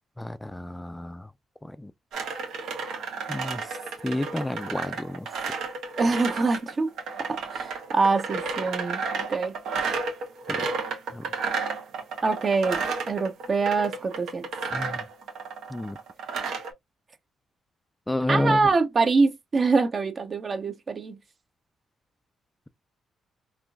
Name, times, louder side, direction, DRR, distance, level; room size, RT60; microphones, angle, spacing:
voice 1, 0.2-1.3 1.6-1.9 3.3-3.8 4.0-5.3 10.5-10.7 11.1-11.3 14.7-15.0 15.7-16.0 18.1-18.7, left 1 dB, 10° left, 0.3 m, -30 dB
sound 1, 2.1-16.7, right 4 dB, 80° right, 1.0 m, -32 dB
voice 2, 6.0-6.9 7.3-9.6 12.2-14.5 18.3-21.2, right 4 dB, 45° right, 0.8 m, -25 dB
3.6 x 2.5 x 2.3 m
supercardioid pair, 65°, 0 cm